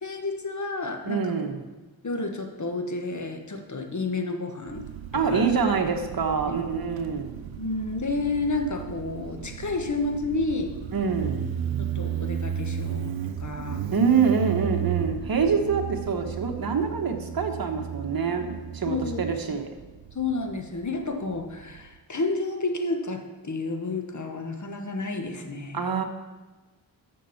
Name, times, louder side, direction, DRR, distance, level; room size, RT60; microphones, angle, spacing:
voice 1, 0.0-1.3 2.0-4.8 5.3-5.5 7.6-10.7 11.8-13.1 13.4-13.9 18.8-19.2 19.5-19.6 20.1-25.8, left 3 dB, 40° left, 4 dB, 1.6 m, -30 dB
voice 2, 1.0-1.6 5.1-7.4 10.9-11.5 13.9-19.7 25.7-26.0, right 5 dB, 50° right, 4 dB, 1.5 m, -25 dB
Motorcycle, 4.7-21.9, right 9 dB, 90° right, 0.7 m, -34 dB
13.0 x 6.6 x 4.4 m, 1.2 s
cardioid pair, 65°, 44 cm